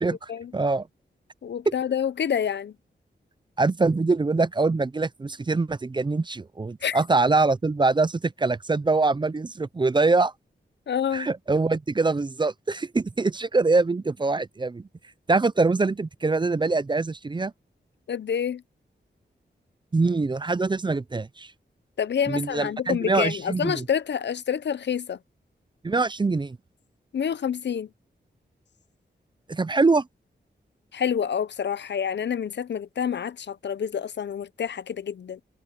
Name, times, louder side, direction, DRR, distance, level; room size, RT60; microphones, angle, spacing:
voice 1, 0.0-0.9 1.7-1.8 3.6-10.3 11.1-14.9 15.3-17.5 19.9-21.5 22.3-23.8 25.8-26.6 29.5-30.1, right 3 dB, 25° right, 0.5 m, -24 dB
voice 2, 1.4-2.7 6.8-7.0 10.9-11.3 18.1-18.6 22.0-25.2 27.1-27.9 30.9-35.4, left 8 dB, 70° left, 0.6 m, -28 dB
wide cardioid pair, 105°, 19 cm